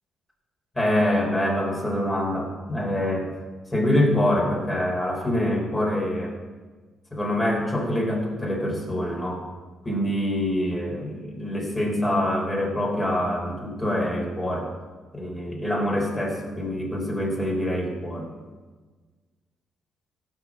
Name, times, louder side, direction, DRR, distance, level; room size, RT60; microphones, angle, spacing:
voice 1, 0.7-3.3 3.7-6.3 7.1-9.4 9.8-14.7 15.1-18.3, left 1 dB, 15° left, -1 dB, 3.9 m, -25 dB
16.0 x 5.6 x 7.5 m, 1.4 s
cardioid pair, 90°, 0 cm